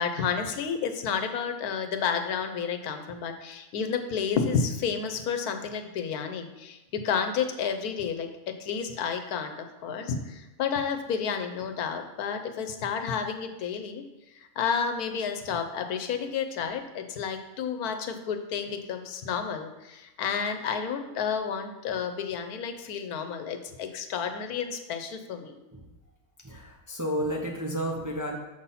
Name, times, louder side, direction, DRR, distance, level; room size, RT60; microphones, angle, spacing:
voice 1, 0.0-8.3 8.6-14.0 14.6-25.5, left 6 dB, 85° left, 6 dB, 1.2 m, -31 dB
voice 2, 26.4-28.4, equal, 20° right, -1 dB, 0.5 m, -31 dB
7.1 x 5.6 x 4.1 m, 1.0 s
omnidirectional pair, 1.5 m